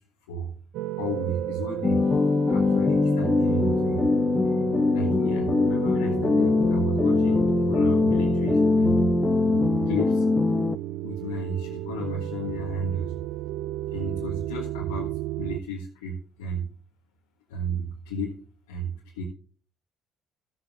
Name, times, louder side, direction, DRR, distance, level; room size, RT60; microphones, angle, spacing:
sound 1, 0.7-15.6, right 14 dB, 75° right, 0.5 m, -32 dB
voice 1, 1.0-2.0 2.5-4.1 4.9-9.1 9.8-10.2 11.0-13.2 13.9-15.1 15.4-16.7 17.5-18.3 18.7-19.2, right 1 dB, 90° left, -3 dB, 1.6 m, -32 dB
sound 2, 1.8-10.8, left 4 dB, 30° left, 0.4 m, -22 dB
13.0 x 7.6 x 3.7 m, 0.42 s
hypercardioid pair, 60°, 0 cm